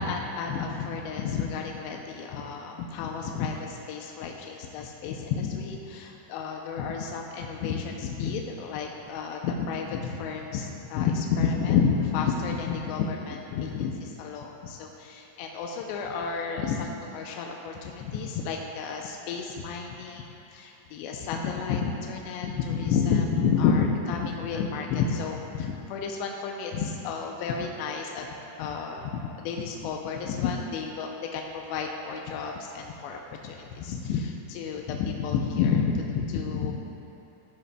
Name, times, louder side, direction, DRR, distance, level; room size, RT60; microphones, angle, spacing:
voice 1, 0.0-28.3 28.6-36.7, left 6 dB, 85° left, 1 dB, 2.8 m, -30 dB
15.0 x 9.8 x 2.2 m, 2.8 s
omnidirectional pair, 4.9 m